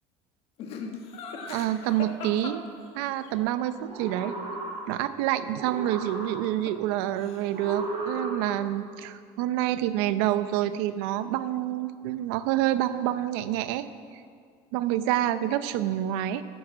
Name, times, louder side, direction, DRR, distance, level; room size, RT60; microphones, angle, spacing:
Laughter, 0.6-3.3 6.1-6.9 7.1-7.7, left 4 dB, 50° left, 1.6 m, -39 dB
voice 1, 1.5-2.6 2.9-4.4 4.9-13.9 14.7-16.4, right 13 dB, 85° right, 12 dB, 0.8 m, -27 dB
sound 1, 3.7-5.2 5.5-6.8 7.5-8.8, right 3 dB, 50° right, 3.3 m, -35 dB
12.5 x 9.6 x 7.6 m, 2.1 s
cardioid pair, 145°, 12 cm